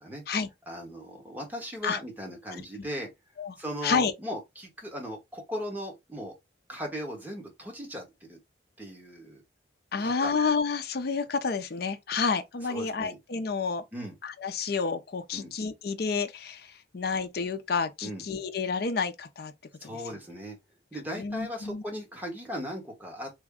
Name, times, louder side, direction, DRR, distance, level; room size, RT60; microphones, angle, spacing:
voice 1, 0.7-3.1 3.6-6.3 6.7-8.4 8.8-9.4 10.0-10.3 12.7-13.2 13.9-14.1 15.3-15.5 18.0-18.2 19.8-20.6 20.9-23.3, equal, 10° right, 1.1 m, -38 dB
voice 2, 2.5-2.9 3.4-3.6 3.8-4.1 9.9-13.8 14.2-19.5 19.8-20.0 21.1-21.8, left 5 dB, 55° left, 0.5 m, -30 dB
3.4 x 2.1 x 3.6 m
head